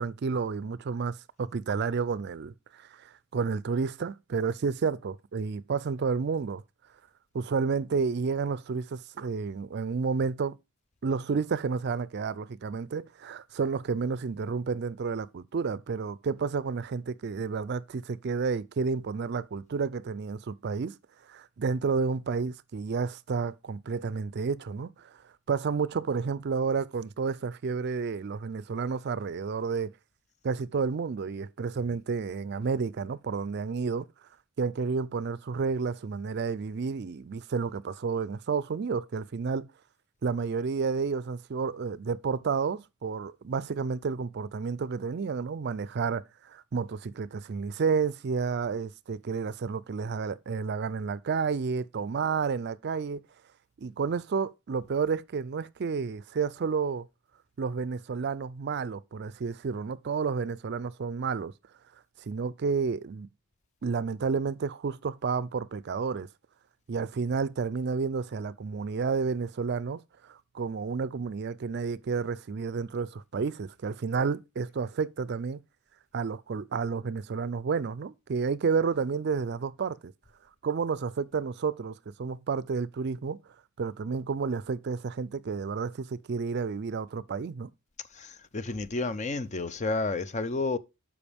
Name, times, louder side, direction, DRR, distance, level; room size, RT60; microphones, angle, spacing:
voice 1, 0.0-6.6 7.3-10.6 11.0-20.9 21.3-25.1 25.5-29.9 30.4-34.1 34.6-39.7 40.2-53.2 53.8-57.1 57.6-61.5 62.2-63.3 63.8-66.3 66.9-75.6 76.1-80.1 80.6-83.4 83.8-87.7, right 5 dB, 50° right, 0.4 m, -31 dB
voice 2, 88.1-90.8, left 3 dB, 35° left, 0.5 m, -31 dB
12.0 x 4.9 x 3.4 m
head